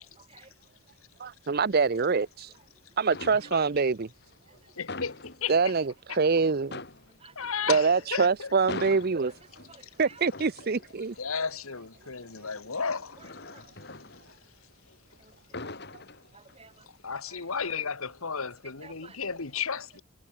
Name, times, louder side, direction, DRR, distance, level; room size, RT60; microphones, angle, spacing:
voice 1, 0.2-0.5 5.6-5.7 7.2-7.7 9.7-10.2 13.2-13.3 13.5-13.7 15.2-15.6 16.3-16.9 17.3-17.4 18.8-19.2, right 4 dB, 25° right, 4.3 m, -53 dB
voice 2, 1.2-2.5 3.0-4.1 5.5-6.8 7.7-9.3 10.0-11.1, right 4 dB, 45° right, 0.6 m, -25 dB
sound 1, 2.0-2.7 3.0-3.9 4.2-6.0 6.3-6.4 6.6-15.0 15.3-16.8 17.2-17.4, left 3 dB, 50° left, 4.1 m, -44 dB
voice 3, 4.8-5.5 6.1-6.2 7.3-8.5 11.2-13.2 13.7-13.8 17.0-20.0, left 6 dB, 75° left, 1.5 m, -33 dB
head